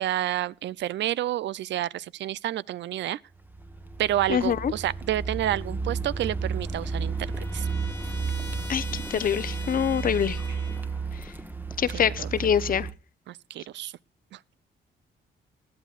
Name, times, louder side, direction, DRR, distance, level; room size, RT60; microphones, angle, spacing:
voice 1, 0.0-3.2 4.0-7.7 11.9-12.5 13.3-13.9 14.3-14.4, right 13 dB, 65° right, 0.5 m, -29 dB
Car, 3.4-12.9, right 4 dB, 10° right, 1.1 m, -32 dB
voice 2, 4.3-4.7 8.7-10.4 11.8-12.9, left 8 dB, 45° left, 0.8 m, -25 dB
Trumpet, 6.4-11.1, left 2 dB, 10° left, 1.6 m, -44 dB
19.5 x 12.5 x 2.4 m
cardioid pair, 90°, 20 cm